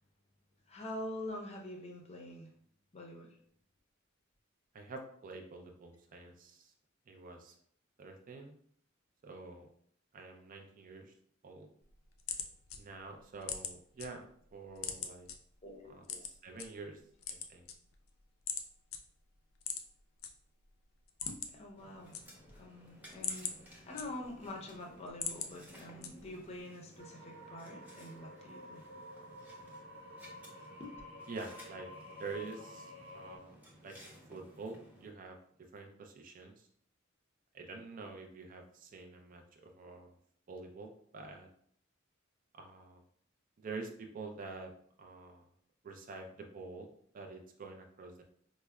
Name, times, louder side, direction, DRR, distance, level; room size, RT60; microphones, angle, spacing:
voice 1, 0.7-2.5 2.9-3.4 15.6-16.2 16.7-16.8 21.3-22.2 22.5-28.8 30.8-30.9, left 1 dB, 30° left, 1 dB, 0.6 m, -46 dB
voice 2, 4.7-6.7 7.1-7.5 8.0-8.6 9.2-9.7 10.1-11.1 11.4-11.7 12.7-15.3 15.8-17.0 17.5-17.7 31.3-31.9 32.2-33.6 33.8-35.4 35.7-36.7 37.5-40.2 40.5-41.5 42.5-43.0 43.6-44.7 45.0-45.5 45.8-46.9 47.1-48.2, right 3 dB, 40° right, 3 dB, 0.4 m, -47 dB
sound 1, 11.8-14.1 14.4-15.3 16.0-16.7 17.1-18.1 18.5-18.6 18.9-19.0 19.6-20.3 20.6-20.7 21.0-21.7 21.9-22.6 23.0-24.5 24.9-25.5 26.0-26.4, left 7 dB, 90° left, 0.4 m, -40 dB
sound 2, 21.8-35.1, equal, 10° right, 0.8 m, -57 dB
sound 3, 27.0-33.4, left 1 dB, 65° right, 0.9 m, -51 dB
4.5 x 2.1 x 2.2 m, 0.62 s
head